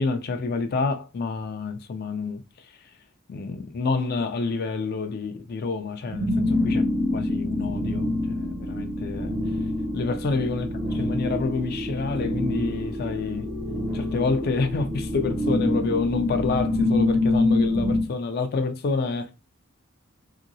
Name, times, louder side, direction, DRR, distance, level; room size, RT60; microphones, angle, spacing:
voice 1, 0.0-2.4 3.3-6.8 7.1-9.4 9.9-10.7 11.0-13.5 13.9-19.3, left 4 dB, 50° left, 0.4 m, -28 dB
sound 1, 6.0-18.1, left 2 dB, 50° right, 0.7 m, -26 dB
2.9 x 2.8 x 2.6 m
head